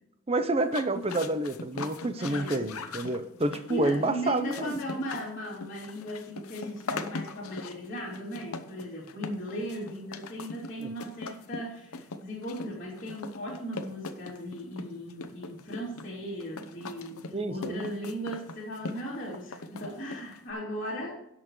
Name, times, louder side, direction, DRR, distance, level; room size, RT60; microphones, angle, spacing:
voice 1, 0.3-4.8 10.8-10.9 17.3-17.9, right 2 dB, 25° right, 10 dB, 0.7 m, -29 dB
sound 1, 0.6-20.5, left 3 dB, 85° left, 0.9 m, -41 dB
voice 2, 2.2-2.7 3.5-21.1, equal, 35° left, -9 dB, 2.7 m, -37 dB
17.0 x 6.2 x 3.1 m, 0.86 s
head